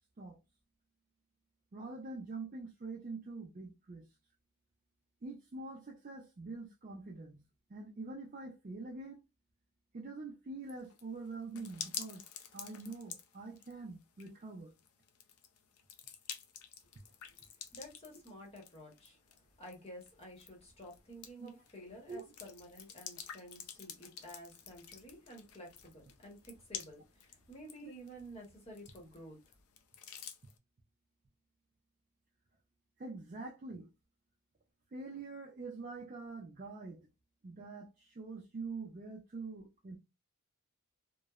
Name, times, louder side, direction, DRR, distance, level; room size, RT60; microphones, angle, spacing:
voice 1, 1.7-4.1 5.2-7.4 7.7-9.2 9.9-12.2 12.5-14.7 21.4-21.6 22.1-22.3 27.8-27.9 33.0-33.9 34.9-37.1 37.4-40.0, right 3 dB, 35° right, 0.4 m, -45 dB
sound 1, 10.7-30.6, left 8 dB, 80° left, 0.5 m, -50 dB
voice 2, 17.7-29.4, equal, 25° left, 0.9 m, -52 dB
3.0 x 2.0 x 2.3 m
head